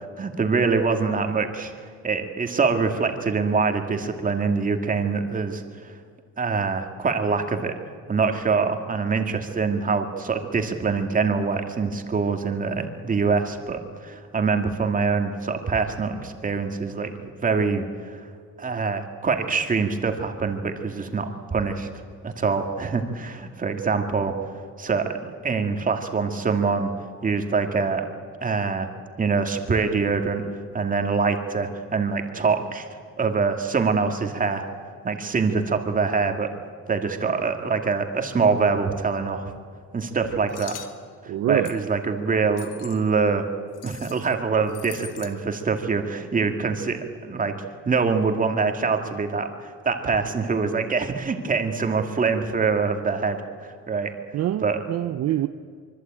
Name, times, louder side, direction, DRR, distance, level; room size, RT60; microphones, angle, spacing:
voice 1, 0.2-1.7 2.0-5.9 6.4-7.7 8.1-17.1 17.4-18.3 18.6-21.9 22.2-24.3 24.8-26.9 27.2-28.1 28.4-28.9 29.2-32.9 33.2-34.6 35.0-36.5 36.9-39.5 39.9-40.8 41.2-43.5 43.8-47.6 47.9-54.1 54.6-54.8, right 4 dB, 25° right, 5 dB, 2.3 m, -24 dB
sound 1, 40.5-41.0 41.7-41.9 42.6-43.0 43.7-44.3 44.7-45.3, left 11 dB, 75° left, 2.0 m, -42 dB
voice 2, 41.3-41.8 54.3-55.5, right 12 dB, 55° right, 11 dB, 0.7 m, -25 dB
25.0 x 24.0 x 9.0 m, 2.1 s
cardioid pair, 145°, 31 cm